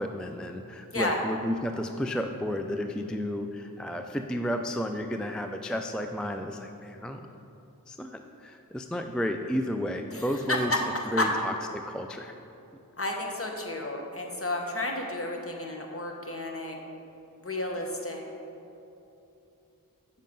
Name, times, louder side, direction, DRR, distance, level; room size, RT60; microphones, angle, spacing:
voice 1, 0.0-7.2 7.9-10.7 11.1-12.4, equal, 5° left, 5 dB, 0.3 m, -32 dB
voice 2, 10.1-10.8 11.2-11.3 13.0-16.8 17.4-18.2, left 2 dB, 40° left, 1 dB, 1.1 m, -31 dB
7.4 x 5.5 x 5.3 m, 2.9 s
wide cardioid pair, 50°, 35 cm